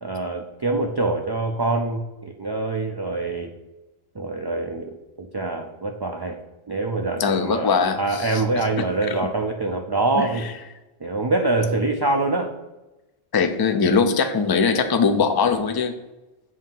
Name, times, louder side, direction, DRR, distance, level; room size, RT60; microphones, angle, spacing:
voice 1, 0.0-3.5 4.1-6.4 6.7-10.5 11.0-12.5, right 2 dB, 35° right, 3 dB, 0.4 m, -25 dB
voice 2, 7.2-8.4 8.8-9.2 10.1-10.3 13.3-16.0, left 5 dB, 30° left, 8 dB, 0.4 m, -21 dB
7.3 x 2.7 x 5.4 m, 1.0 s
omnidirectional pair, 1.0 m